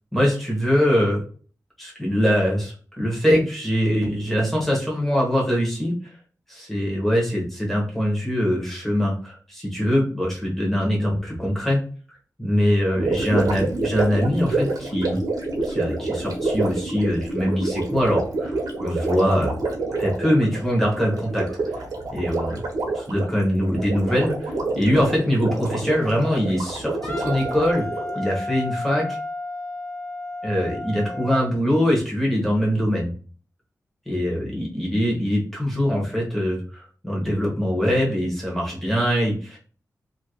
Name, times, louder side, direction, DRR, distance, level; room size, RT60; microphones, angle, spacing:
voice 1, 0.1-1.2 1.8-5.9 6.5-11.8 12.4-15.2 15.6-19.6 20.0-21.5 21.7-21.8 22.1-22.6 22.9-27.8 28.1-29.2 30.4-33.1 34.1-39.6, equal, 5° left, -3 dB, 1.0 m, -23 dB
Gurgling, 12.9-28.2, right 2 dB, 75° right, 0.8 m, -28 dB
Wind instrument woodwind instrument, 27.0-31.5, left 2 dB, 35° left, 1.2 m, -32 dB
2.8 x 2.6 x 3.0 m, 0.41 s
wide cardioid pair, 175°, 6 cm